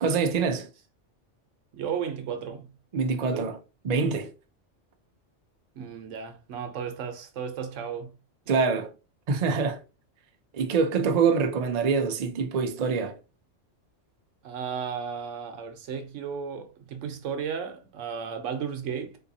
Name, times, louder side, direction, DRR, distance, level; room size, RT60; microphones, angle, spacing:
voice 1, 0.0-0.7 2.9-3.6 3.8-4.3 8.5-8.9 9.3-9.8 10.5-13.2, right 5 dB, 55° right, 0.5 m, -25 dB
voice 2, 1.7-2.7 3.3-3.6 5.8-8.1 14.4-19.2, right 7 dB, 80° right, 1.0 m, -34 dB
3.7 x 2.7 x 2.6 m
omnidirectional pair, 1.2 m